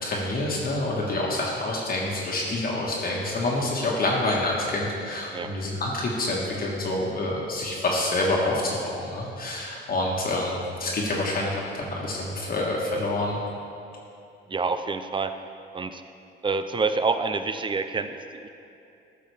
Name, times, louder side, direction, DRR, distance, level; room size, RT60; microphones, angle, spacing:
voice 1, 0.0-13.4, left 2 dB, 50° left, -3 dB, 1.4 m, -27 dB
voice 2, 14.5-15.3 15.7-16.0 16.4-18.5, right 4 dB, 25° right, 9 dB, 0.5 m, -27 dB
11.5 x 5.6 x 3.4 m, 2.7 s
cardioid pair, 90°, 20 cm